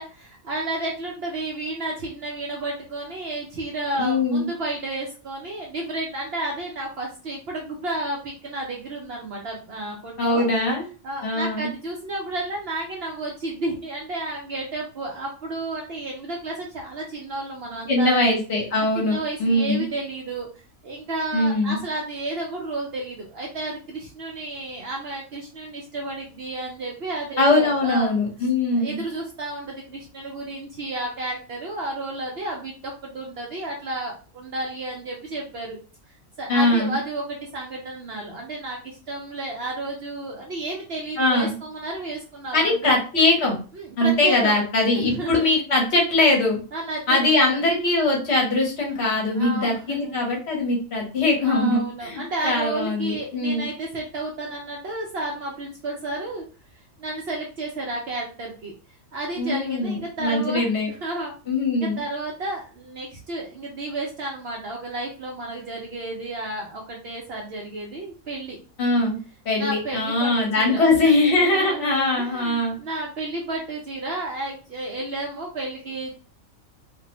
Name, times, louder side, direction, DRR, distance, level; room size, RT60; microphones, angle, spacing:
voice 1, 0.0-10.5 11.0-18.3 18.9-20.5 20.8-28.1 28.4-35.8 36.4-43.0 43.7-44.5 45.0-45.6 46.7-47.6 49.3-50.2 51.4-56.4 57.0-58.7 59.1-61.3 61.8-68.6 69.6-76.1, right 2 dB, 60° right, -1 dB, 0.7 m, -32 dB
voice 2, 4.0-4.5 10.2-10.9 11.2-11.7 17.9-19.8 21.3-21.8 27.4-29.0 36.5-36.9 41.2-41.5 42.5-43.6 44.0-46.6 47.1-53.7 59.4-60.9 61.5-62.0 68.8-69.2 69.4-72.8, left 2 dB, 55° left, -1 dB, 1.0 m, -21 dB
2.6 x 2.0 x 2.9 m, 0.36 s
omnidirectional pair, 1.4 m